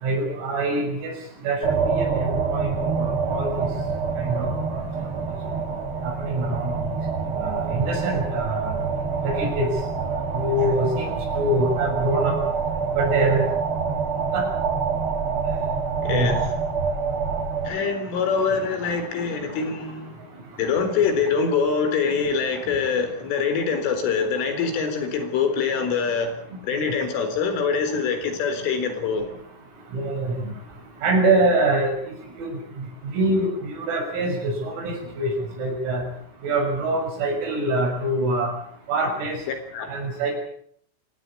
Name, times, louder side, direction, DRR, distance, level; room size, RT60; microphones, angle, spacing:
voice 1, 0.0-1.1 1.4-1.6 2.0-3.7 4.2-4.8 6.0-6.7 7.3-8.8 9.2-9.7 10.3-12.4 12.9-13.5 14.3-14.4 16.1-16.3 26.8-27.0 29.9-30.5 31.0-31.9 32.4-32.6 33.0-35.3 35.6-36.0 36.4-38.5 38.9-39.4 39.9-40.3, right 2 dB, 85° right, 3 dB, 9.3 m, -24 dB
sound 1, 1.6-17.7, right 5 dB, 40° right, 2.0 m, -26 dB
voice 2, 16.0-16.5 17.6-20.2 20.6-26.3 26.6-29.3 39.7-40.0, left 5 dB, 70° left, 7 dB, 6.3 m, -24 dB
26.0 x 17.5 x 8.5 m, 0.66 s
omnidirectional pair, 6.0 m